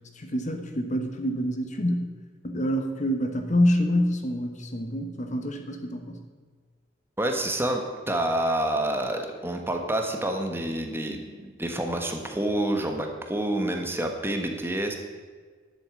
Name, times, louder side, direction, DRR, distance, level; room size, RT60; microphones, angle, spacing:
voice 1, 0.2-2.1 2.4-6.2, equal, 40° left, 5 dB, 1.3 m, -26 dB
voice 2, 7.2-15.0, right 1 dB, 10° right, 4 dB, 1.3 m, -28 dB
11.0 x 8.1 x 8.4 m, 1.5 s
head